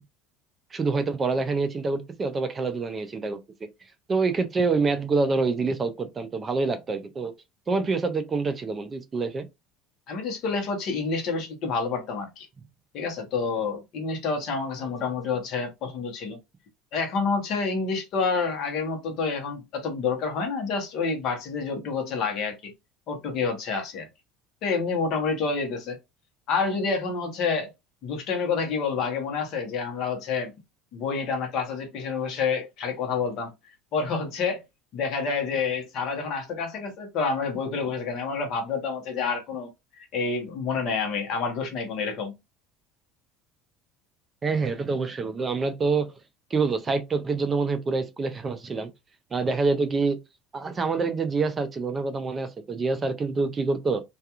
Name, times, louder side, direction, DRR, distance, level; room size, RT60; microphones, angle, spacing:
voice 1, 0.7-3.4 4.1-7.3 7.7-9.5 44.4-46.1 46.5-48.9 49.3-50.2 50.5-54.0, right 4 dB, 15° right, 0.3 m, -26 dB
voice 2, 10.1-12.5 12.9-16.4 16.9-22.7 23.1-24.1 24.6-26.0 26.5-27.7 28.0-30.5 30.9-33.5 33.9-34.6 34.9-39.7 40.0-42.3, left 5 dB, 45° left, 0.8 m, -28 dB
2.3 x 2.3 x 2.8 m
cardioid pair, 170°, 0 cm